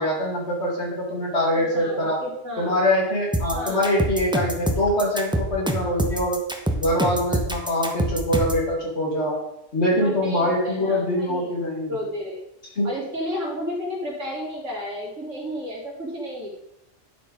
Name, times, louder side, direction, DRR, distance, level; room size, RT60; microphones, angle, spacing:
voice 1, 0.0-2.2 2.6-6.4 6.7-9.4 9.7-12.0 12.8-12.9, left 1 dB, 60° left, -2 dB, 2.7 m, -23 dB
voice 2, 1.6-2.8 3.5-3.9 9.9-11.5 11.9-12.5 12.8-16.5, equal, 85° right, -2 dB, 2.5 m, -32 dB
sound 1, 3.3-8.6, right 1 dB, 5° right, 0.7 m, -25 dB
10.5 x 4.5 x 5.2 m, 0.80 s
omnidirectional pair, 1.3 m